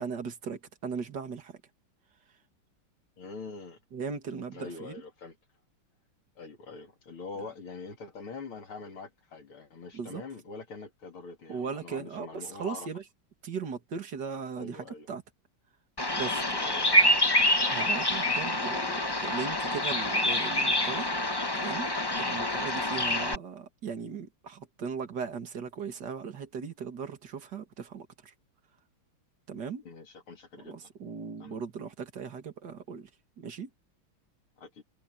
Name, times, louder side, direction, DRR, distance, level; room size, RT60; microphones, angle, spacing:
voice 1, 0.0-1.6 3.9-4.9 9.9-10.2 11.5-13.0 13.4-15.2 16.1-16.6 17.7-21.1 21.5-21.9 22.2-28.3 29.5-29.8 30.6-33.1 33.4-33.7, right 6 dB, 55° right, 2.7 m, -38 dB
voice 2, 3.2-3.8 4.5-5.4 6.4-12.9 14.6-15.1 16.6-17.0 29.8-30.9 31.4-31.6 34.6-34.8, left 4 dB, 85° left, 3.9 m, -44 dB
Bird vocalization bird call bird song, 16.0-23.4, left 1 dB, 20° left, 0.7 m, -27 dB
omnidirectional pair, 2.3 m